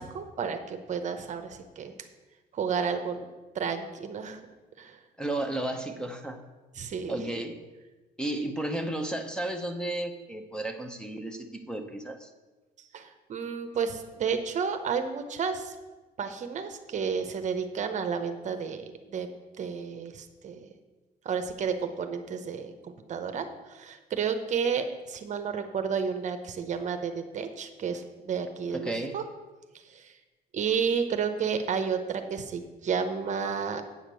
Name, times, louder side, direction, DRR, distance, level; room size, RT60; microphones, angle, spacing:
voice 1, 0.0-1.9 2.5-3.3 3.5-4.4 4.8-5.0 6.8-7.2 12.8-15.7 16.2-19.3 19.6-20.7 21.2-29.2 29.9-30.1 30.5-33.8, right 6 dB, 45° right, 8 dB, 0.8 m, -31 dB
voice 2, 5.2-6.4 7.1-7.6 8.2-12.3 28.7-29.1, right 1 dB, 5° left, 6 dB, 0.9 m, -33 dB
8.3 x 5.1 x 7.6 m, 1.2 s
cardioid pair, 110°, 17 cm